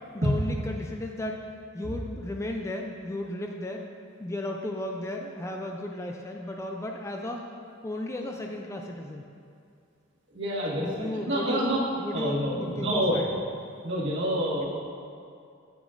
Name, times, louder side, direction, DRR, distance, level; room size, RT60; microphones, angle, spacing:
voice 1, 0.1-1.4 1.7-3.8 4.2-7.4 7.8-9.2 10.8-13.3 14.4-14.6, left 1 dB, 15° left, 2 dB, 0.3 m, -34 dB
voice 2, 10.3-11.8 12.1-13.3 13.8-14.6, equal, 60° right, -6 dB, 1.6 m, -28 dB
8.2 x 8.1 x 2.5 m, 2.4 s
head